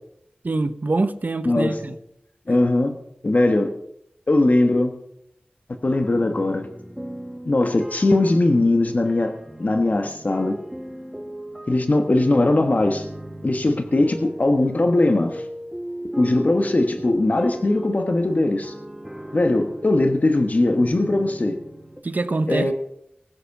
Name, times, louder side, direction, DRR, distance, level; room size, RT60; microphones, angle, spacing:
voice 1, 0.4-1.9 22.0-22.7, right 2 dB, 55° right, 0.8 m, -24 dB
voice 2, 1.4-1.8 2.5-2.9 3.2-3.7 4.3-4.9 5.8-6.7 7.4-10.6 11.7-13.1 13.4-15.5 16.2-18.7 19.3-21.6 22.5-22.7, left 2 dB, 50° left, 1.3 m, -20 dB
sound 1, 6.0-22.0, equal, 5° right, 1.3 m, -37 dB
19.5 x 8.1 x 6.0 m
wide cardioid pair, 70°, 3 cm